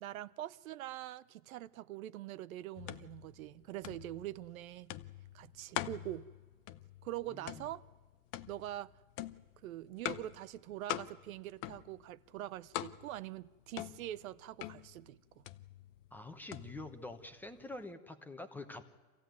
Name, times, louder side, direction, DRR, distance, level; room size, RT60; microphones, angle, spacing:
voice 1, 0.0-4.9 5.3-6.3 7.0-7.8 8.5-8.9 9.6-15.4, right 13 dB, 70° right, 0.7 m, -44 dB
sound 1, 2.8-17.9, left 14 dB, 30° left, 0.6 m, -45 dB
voice 2, 7.3-7.6 16.1-18.8, left 2 dB, 5° left, 1.0 m, -46 dB
24.0 x 15.5 x 9.3 m
supercardioid pair, 140°, 44 cm